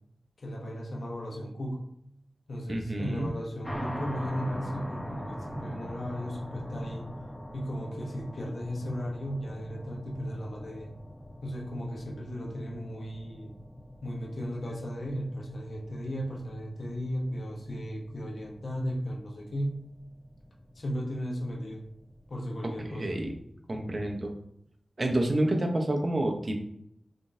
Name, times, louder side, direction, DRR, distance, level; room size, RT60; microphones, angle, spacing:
voice 1, 0.4-1.9 2.5-7.1 7.5-10.9 11.4-13.5 14.0-19.9 20.7-21.8 22.3-23.2, equal, 70° left, -1 dB, 0.9 m, -36 dB
voice 2, 2.7-3.3 22.8-23.3 23.7-24.3 25.0-26.6, right 1 dB, 45° right, 3 dB, 0.8 m, -29 dB
sound 1, 3.6-23.4, equal, 10° left, 0.9 m, -43 dB
3.7 x 3.6 x 2.6 m, 0.74 s
cardioid pair, 45°, 0 cm